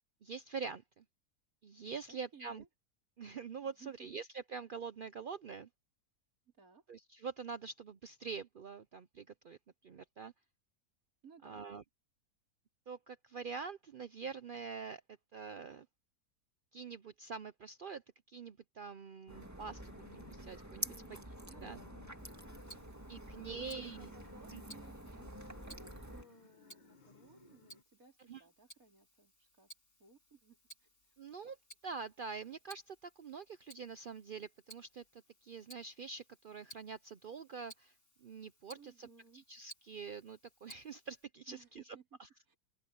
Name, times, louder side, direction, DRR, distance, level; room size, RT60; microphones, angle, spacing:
voice 1, 0.2-1.0 1.6-2.6 3.2-5.7 6.9-9.6 9.8-10.3 11.4-11.8 12.9-15.0 15.3-15.9 16.7-18.0 18.3-19.8 20.1-20.9 21.6-21.8 23.1-24.1 24.5-24.6 28.3-28.4 31.2-31.6 31.8-37.9 38.2-39.1 39.3-42.3, right 5 dB, 85° right, 0.4 m, -45 dB
voice 2, 2.1-2.7 3.6-4.1 6.6-6.8 11.2-11.7 20.9-22.0 23.2-29.7 30.0-30.9 38.7-39.4 41.5-42.0 42.5-42.6, right 4 dB, 60° right, 4.1 m, -60 dB
sound 1, 19.3-27.8, left 3 dB, 30° left, 1.3 m, -61 dB
sound 2, 19.3-26.2, right 1 dB, 10° right, 2.0 m, -48 dB
Tick-tock, 22.2-41.2, right 1 dB, 45° left, 8.2 m, -60 dB
open air
omnidirectional pair, 1.7 m